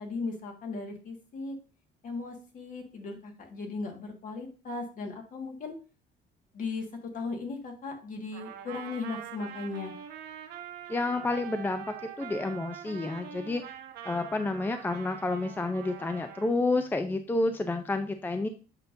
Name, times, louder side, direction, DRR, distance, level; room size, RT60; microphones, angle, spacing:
voice 1, 0.0-1.6 2.0-5.7 6.5-6.9 7.1-9.9, left 3 dB, 50° left, 3 dB, 1.7 m, -37 dB
Trumpet, 8.3-16.5, right 9 dB, 75° right, 1.1 m, -44 dB
voice 2, 10.9-13.6 14.0-18.5, left 2 dB, 10° left, 8 dB, 0.4 m, -30 dB
8.1 x 5.2 x 2.6 m, 0.35 s
cardioid pair, 110°, 17 cm